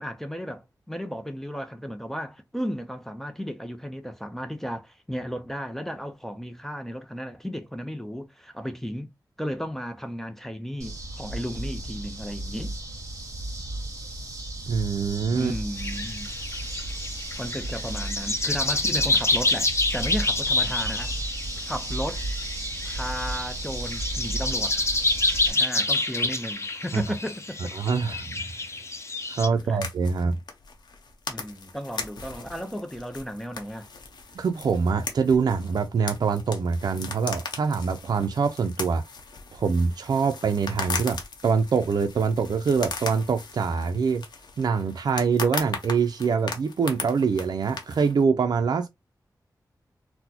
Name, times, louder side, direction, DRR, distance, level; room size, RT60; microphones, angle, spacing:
voice 1, 0.0-9.1 9.4-12.8 15.3-16.3 17.4-21.2 21.7-22.2 22.8-24.8 25.5-27.7 29.5-29.8 31.3-33.9, equal, 5° left, 0.5 m, -34 dB
sound 1, 10.8-25.5, right 2 dB, 45° right, 1.9 m, -34 dB
voice 2, 14.7-15.5 26.9-27.0 27.8-28.4 29.3-30.4 34.4-39.0 39.5-44.2 44.6-48.9, right 5 dB, 70° right, 0.4 m, -24 dB
sound 2, 15.8-29.5, left 2 dB, 40° left, 0.7 m, -28 dB
sound 3, 29.6-48.2, left 4 dB, 85° left, 0.8 m, -38 dB
4.0 x 2.1 x 2.7 m
wide cardioid pair, 105°, 7 cm